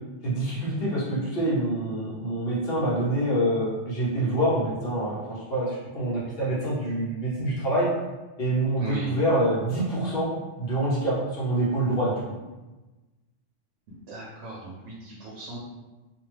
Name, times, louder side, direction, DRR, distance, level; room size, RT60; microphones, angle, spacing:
voice 1, 0.2-7.9 8.4-10.3 10.6-12.1, right 1 dB, 55° left, -7 dB, 1.0 m, -26 dB
voice 2, 8.8-9.2 13.9-15.6, right 1 dB, 80° right, -5 dB, 1.0 m, -38 dB
2.6 x 2.2 x 3.2 m, 1.1 s
omnidirectional pair, 1.3 m